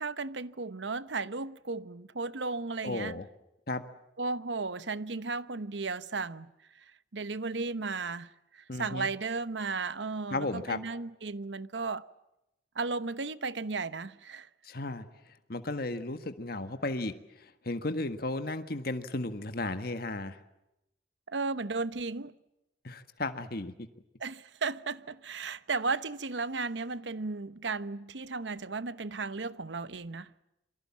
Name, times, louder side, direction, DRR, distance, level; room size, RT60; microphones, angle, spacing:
voice 1, 0.0-3.2 4.2-6.5 7.1-12.0 12.7-14.5 21.3-22.3 24.2-30.3, right 4 dB, 85° right, 1.0 m, -35 dB
voice 2, 2.8-3.3 3.7-3.8 8.7-9.1 10.3-10.8 14.6-15.1 15.5-20.4 22.8-23.7, left 2 dB, 55° left, 1.7 m, -34 dB
27.5 x 23.5 x 7.4 m
head